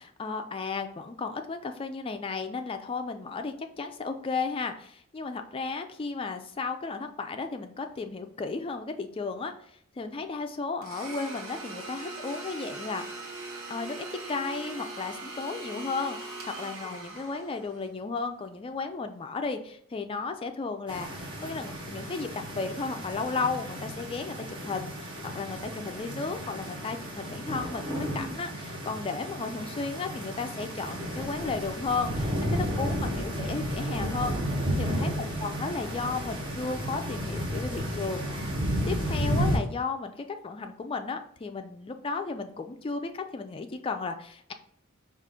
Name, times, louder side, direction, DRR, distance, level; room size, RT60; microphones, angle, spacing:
voice 1, 0.0-9.7 10.0-13.0 13.7-22.3 22.5-34.4 34.8-38.2 38.9-44.5, left 4 dB, 25° left, 7 dB, 0.3 m, -34 dB
Domestic sounds home sounds, 10.8-17.9, right 2 dB, 65° right, 1.0 m, -41 dB
sound 1, 20.9-39.6, equal, 25° right, 0.9 m, -32 dB
4.7 x 2.4 x 3.7 m, 0.66 s
head